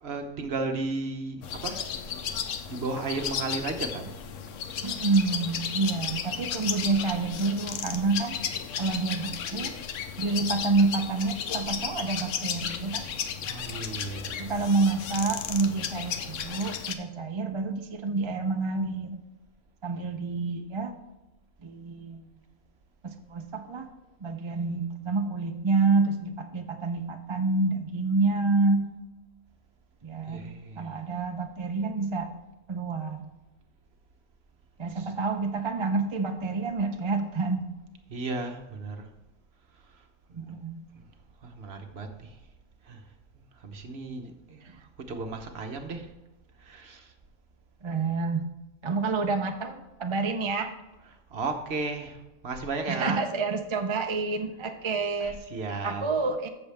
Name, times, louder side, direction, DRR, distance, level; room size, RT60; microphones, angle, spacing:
voice 1, 0.0-1.9 2.7-4.2 13.4-14.7 30.3-30.9 35.0-35.1 38.1-39.1 39.9-40.0 40.3-40.4 40.9-41.1 41.4-42.4 42.8-43.0 43.6-44.7 45.1-46.1 46.6-47.1 51.3-52.2 52.4-53.2 55.2-56.0, right 3 dB, 50° right, 5 dB, 1.2 m, -34 dB
sound 1, 1.4-16.9, left 7 dB, 70° left, 1.0 m, -34 dB
voice 2, 4.8-8.4 8.8-9.7 10.2-13.0 14.4-19.2 19.8-20.9 21.6-22.3 23.0-23.9 24.2-28.9 30.0-30.5 30.8-32.3 32.7-33.3 34.8-37.7 40.3-40.9 44.6-44.8 47.8-48.4 48.8-50.7 52.9-55.4 55.8-56.5, right 3 dB, 35° right, 5 dB, 0.5 m, -28 dB
13.5 x 7.0 x 3.5 m, 1.0 s
omnidirectional pair, 1.4 m